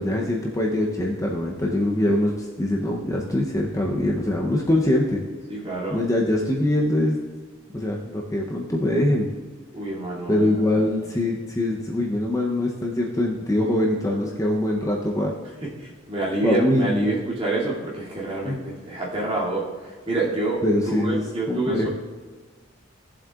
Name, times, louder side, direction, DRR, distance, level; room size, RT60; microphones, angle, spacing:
voice 1, 0.0-5.2 5.9-7.2 7.7-9.3 10.3-15.3 16.4-17.1 18.5-18.6 20.6-21.2 21.5-21.9, left 1 dB, 15° left, -1 dB, 0.8 m, -23 dB
voice 2, 5.5-6.0 9.7-10.6 15.6-21.9, right 2 dB, 30° right, -7 dB, 2.6 m, -28 dB
17.0 x 7.4 x 2.5 m, 1.4 s
head